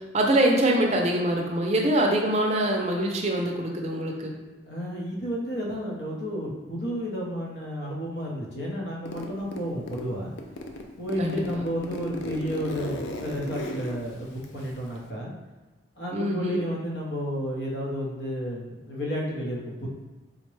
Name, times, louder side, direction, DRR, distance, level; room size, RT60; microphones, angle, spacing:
voice 1, 0.1-4.3 11.2-11.6 16.1-16.6, right 1 dB, 40° right, 1 dB, 0.5 m, -24 dB
voice 2, 4.7-10.3 11.0-15.3 16.0-19.9, equal, 70° left, -3 dB, 0.8 m, -32 dB
Zipper (clothing), 9.1-10.1 10.4-15.1, left 1 dB, 85° left, 0.4 m, -36 dB
3.7 x 2.1 x 3.1 m, 1.2 s
head